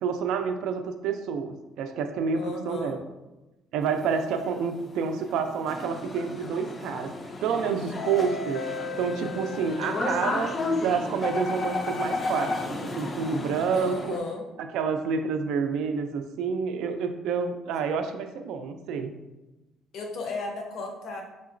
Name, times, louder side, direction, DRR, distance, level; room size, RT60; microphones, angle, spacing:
voice 1, 0.0-3.0 3.7-7.1 7.4-8.7 9.0-14.0 14.6-19.1, right 6 dB, 80° right, 7 dB, 0.3 m, -28 dB
voice 2, 2.4-3.0 13.7-14.4 19.9-21.2, left 3 dB, 65° left, 1 dB, 0.7 m, -34 dB
sound 1, 3.8-14.2, left 3 dB, 25° left, 0.3 m, -33 dB
3.7 x 2.8 x 2.5 m, 1.0 s
cardioid pair, 150°, 0 cm